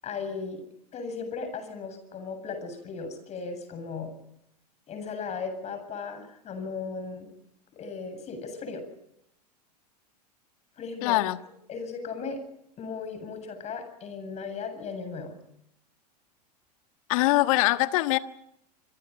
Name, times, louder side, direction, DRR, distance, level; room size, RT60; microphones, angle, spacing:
voice 1, 0.0-0.6 0.9-4.1 4.9-7.3 7.8-8.8 10.8-11.2 11.7-12.4 12.8-15.3 17.2-17.3, left 5 dB, 35° left, 8 dB, 8.0 m, -36 dB
voice 2, 11.0-11.4 17.1-18.2, left 18 dB, 55° left, 11 dB, 1.5 m, -23 dB
26.5 x 25.5 x 5.5 m, 0.75 s
figure-of-eight pair, 90°, 21 cm